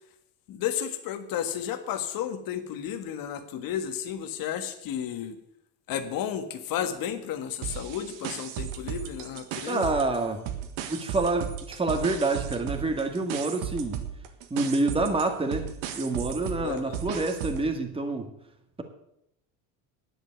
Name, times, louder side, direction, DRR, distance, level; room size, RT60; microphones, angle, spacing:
voice 1, 0.5-5.4 5.9-9.9 16.6-17.0, left 9 dB, 50° left, 9 dB, 1.6 m, -33 dB
sound 1, 7.6-10.2 10.5-17.7, right 10 dB, 80° right, 1.8 m, -35 dB
voice 2, 9.7-10.4 10.9-14.0 14.5-18.3, right 2 dB, 15° right, 5 dB, 1.9 m, -27 dB
10.5 x 8.0 x 8.3 m, 0.77 s
supercardioid pair, 115°, 43 cm